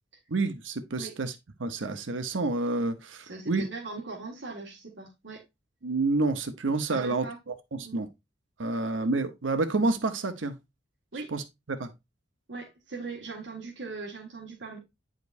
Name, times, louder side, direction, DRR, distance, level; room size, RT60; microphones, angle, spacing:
voice 1, 0.3-1.3 1.6-3.6 5.8-8.1 8.6-10.6 11.3-11.4 11.8-11.9, right 3 dB, 85° right, 0.8 m, -29 dB
voice 2, 3.2-5.4 6.9-7.4 7.8-8.0 11.1-11.3 12.5-14.8, right 3 dB, 70° right, 1.8 m, -40 dB
9.3 x 5.1 x 2.5 m
head